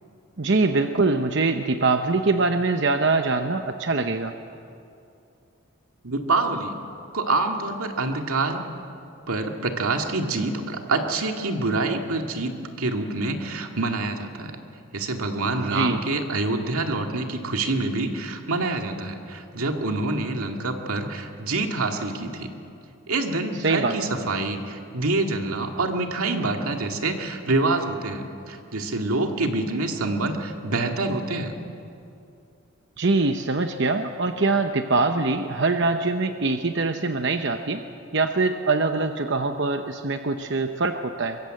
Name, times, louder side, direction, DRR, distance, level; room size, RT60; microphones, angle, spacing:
voice 1, 0.4-4.3 15.6-16.0 23.6-23.9 33.0-37.8 38.1-41.4, right 3 dB, 55° right, 6 dB, 0.9 m, -23 dB
voice 2, 6.0-6.8 7.1-8.6 9.3-14.6 14.9-22.5 23.1-31.5, right 2 dB, 90° right, 3 dB, 2.3 m, -26 dB
24.0 x 23.0 x 7.8 m, 2.5 s
head